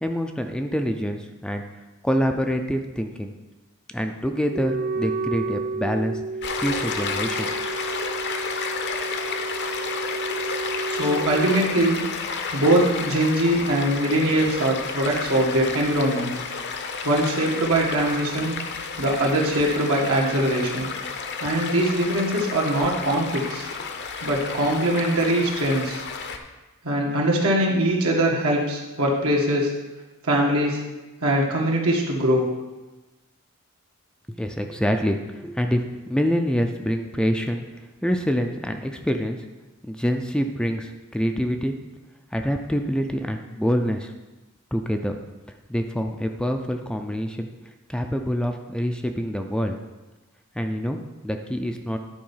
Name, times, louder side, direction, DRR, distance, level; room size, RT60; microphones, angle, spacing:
voice 1, 0.0-1.6 2.0-3.3 3.9-6.2 6.6-7.5 34.3-37.6 38.0-39.4 39.8-41.7 42.3-44.1 44.7-45.2 45.7-47.5 47.9-49.8 50.6-52.0, equal, 5° left, 4 dB, 0.4 m, -26 dB
Wind instrument woodwind instrument, 4.5-11.5, right 3 dB, 45° right, 0.7 m, -31 dB
Stream, 6.4-26.4, left 5 dB, 50° left, 0.7 m, -31 dB
voice 2, 10.9-12.0 12.5-16.3 17.0-18.6 19.0-20.9 21.4-23.7 24.2-26.0 26.8-29.7 30.2-30.8 31.2-32.5, right 1 dB, 75° right, -2 dB, 1.8 m, -22 dB
10.5 x 4.4 x 5.6 m, 1.1 s
head